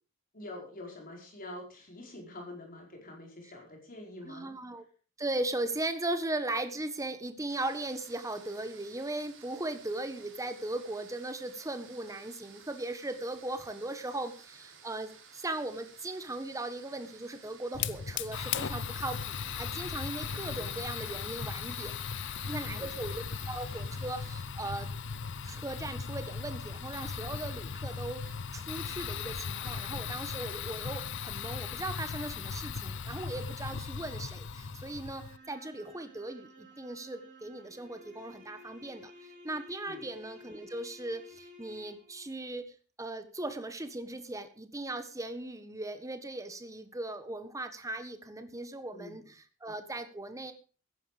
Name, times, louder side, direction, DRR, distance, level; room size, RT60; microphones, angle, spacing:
voice 1, 0.3-4.5 20.4-20.8 22.6-22.9 39.9-40.1 48.9-49.2, left 1 dB, 45° left, 1 dB, 4.9 m, -46 dB
voice 2, 4.2-4.8 5.2-21.9 22.4-24.9 25.4-42.7 43.0-50.5, right 2 dB, 15° right, 9 dB, 1.4 m, -38 dB
sound 1, 7.5-24.4, right 6 dB, 65° right, 3.6 m, -55 dB
Fire, 17.7-35.4, left 6 dB, 60° left, 0.7 m, -37 dB
sound 2, 35.0-42.3, left 1 dB, 35° right, 5.2 m, -53 dB
14.5 x 10.5 x 5.2 m, 0.38 s
head